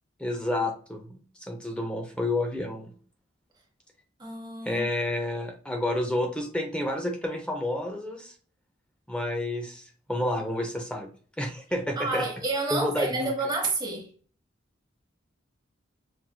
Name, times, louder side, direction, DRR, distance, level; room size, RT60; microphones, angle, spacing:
voice 1, 0.2-1.2 1.5-2.9 4.7-8.3 9.1-11.1 11.4-12.2 12.7-13.3, left 1 dB, 5° left, 0.5 m, -30 dB
voice 2, 4.2-4.9 12.0-14.1, right 3 dB, 25° right, 1.1 m, -29 dB
5.7 x 2.5 x 2.2 m
head